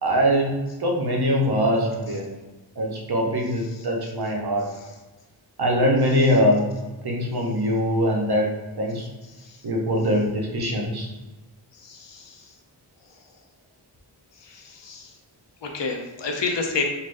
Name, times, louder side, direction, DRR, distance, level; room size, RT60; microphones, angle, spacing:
voice 1, 0.0-2.3 2.8-4.7 5.6-6.7 7.0-8.5 8.8-9.1 9.6-11.1, equal, 60° right, -1 dB, 0.7 m, -22 dB
voice 2, 11.7-12.5 14.4-15.1 15.6-16.8, left 4 dB, 70° left, 3 dB, 0.6 m, -30 dB
3.3 x 2.5 x 2.5 m, 1.1 s
wide cardioid pair, 55°, 44 cm